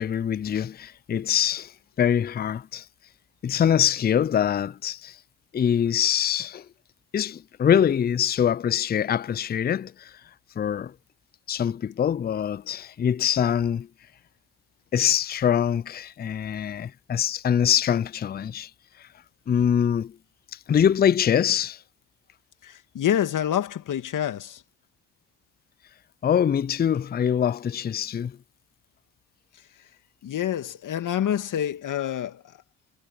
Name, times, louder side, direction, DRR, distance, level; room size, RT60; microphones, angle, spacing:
voice 1, 0.0-1.7 2.0-2.9 3.4-5.2 5.5-6.7 7.1-10.2 10.6-10.9 11.5-13.9 14.9-18.7 19.0-19.1 19.5-20.2 20.5-21.8 26.2-28.4, left 9 dB, 25° left, 0.5 m, -24 dB
voice 2, 22.6-24.6 30.2-32.4, left 10 dB, 55° left, 2.2 m, -27 dB
supercardioid pair, 70°, 38 cm